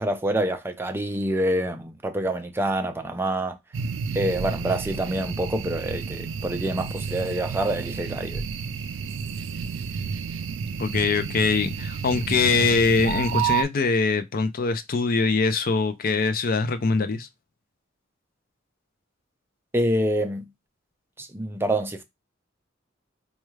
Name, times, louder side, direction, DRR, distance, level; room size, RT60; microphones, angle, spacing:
voice 1, 0.0-3.6 4.1-8.4 19.7-20.4 21.2-22.0, right 1 dB, 10° right, 0.5 m, -26 dB
sound 1, 3.7-13.6, right 6 dB, 75° right, 0.4 m, -30 dB
voice 2, 10.8-17.3, left 4 dB, 50° left, 0.5 m, -23 dB
4.4 x 2.3 x 3.1 m
head